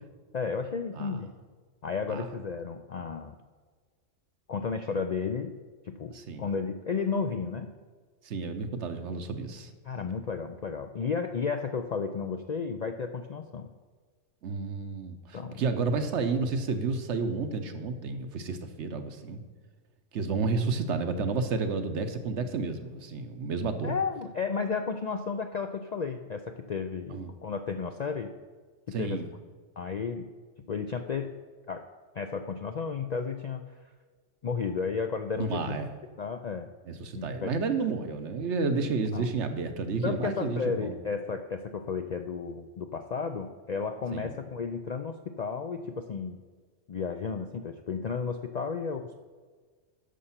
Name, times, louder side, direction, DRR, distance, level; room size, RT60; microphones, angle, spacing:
voice 1, 0.3-1.3 1.8-3.4 4.5-5.5 5.8-6.1 6.4-7.7 9.8-13.7 15.3-15.6 23.8-28.3 28.9-29.2 29.8-30.3 30.7-31.3 31.7-31.8 32.1-33.6 34.4-35.6 36.2-36.7 37.1-37.5 39.1-39.3 40.0-46.4 46.9-49.2, left 5 dB, 60° left, 6 dB, 0.4 m, -33 dB
voice 2, 6.1-6.4 8.2-9.7 14.4-19.4 20.1-23.9 27.1-27.3 28.9-29.3 35.4-35.9 36.9-41.0 44.1-44.3, right 4 dB, 70° right, 8 dB, 1.1 m, -31 dB
10.5 x 6.6 x 5.7 m, 1.5 s
omnidirectional pair, 1.3 m